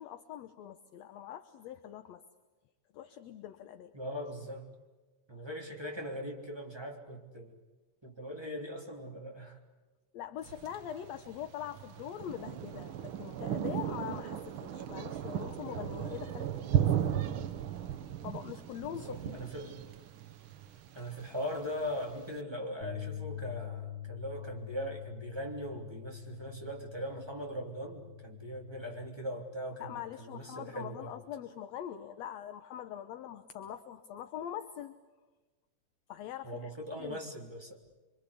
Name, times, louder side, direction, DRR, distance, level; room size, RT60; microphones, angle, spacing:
voice 1, 0.0-2.2 2.9-3.9 10.1-17.2 18.2-19.5 29.8-35.0 36.1-36.7 37.0-37.2, left 10 dB, 65° left, 9 dB, 1.9 m, -43 dB
voice 2, 3.9-4.7 5.3-7.5 8.0-9.6 18.9-19.8 20.9-31.1 36.4-37.8, equal, 10° right, 0 dB, 3.2 m, -40 dB
Thunder, 10.4-22.4, right 10 dB, 70° right, 1.2 m, -36 dB
sound 1, 22.8-29.1, left 10 dB, 30° right, 3.1 m, -45 dB
25.5 x 25.5 x 8.4 m, 1.2 s
omnidirectional pair, 3.8 m